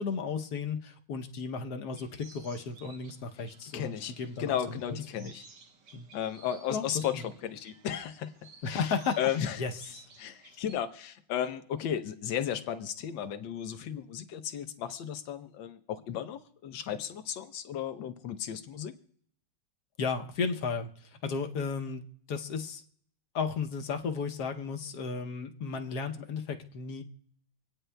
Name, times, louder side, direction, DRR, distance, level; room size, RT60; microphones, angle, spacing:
voice 1, 0.0-5.3 5.9-6.1 6.7-6.9 8.6-9.2 9.6-10.0 20.0-20.9 21.2-22.0 22.3-22.8 23.3-27.0, left 5 dB, 65° left, 5 dB, 1.2 m, -34 dB
sound 1, 1.9-10.8, right 4 dB, 70° right, 1.6 m, -56 dB
voice 2, 3.7-4.1 4.4-5.4 6.1-8.3 8.6-9.6 10.2-18.9, left 9 dB, 90° left, 10 dB, 1.5 m, -34 dB
26.5 x 9.1 x 2.2 m, 0.64 s
omnidirectional pair, 2.0 m